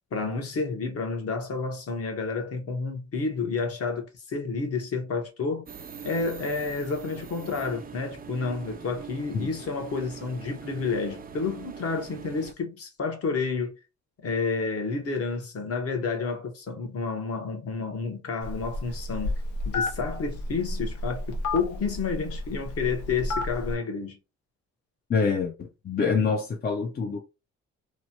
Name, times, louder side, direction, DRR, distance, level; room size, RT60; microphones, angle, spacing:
voice 1, 0.1-5.6 6.0-13.8 14.2-19.3 19.7-24.2, left 4 dB, 50° left, 1.0 m, -30 dB
sound 1, 5.7-12.5, right 7 dB, 30° right, 0.4 m, -42 dB
Telephone, 18.4-23.7, left 2 dB, 75° left, 0.8 m, -31 dB
voice 2, 25.1-27.2, left 5 dB, 35° left, 0.5 m, -26 dB
3.1 x 2.1 x 2.8 m
cardioid pair, 90°, 30 cm